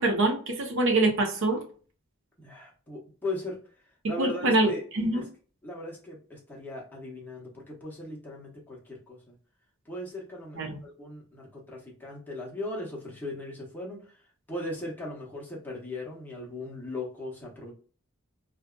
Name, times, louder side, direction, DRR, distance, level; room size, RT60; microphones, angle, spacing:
voice 1, 0.0-1.6 4.0-5.2 10.5-10.8, right 2 dB, 60° right, 3 dB, 0.7 m, -25 dB
voice 2, 2.4-3.6 4.1-4.8 5.1-5.3 5.6-9.3 9.9-14.2 14.5-17.7, left 1 dB, 10° left, -4 dB, 0.9 m, -38 dB
2.6 x 2.4 x 2.2 m, 0.40 s
head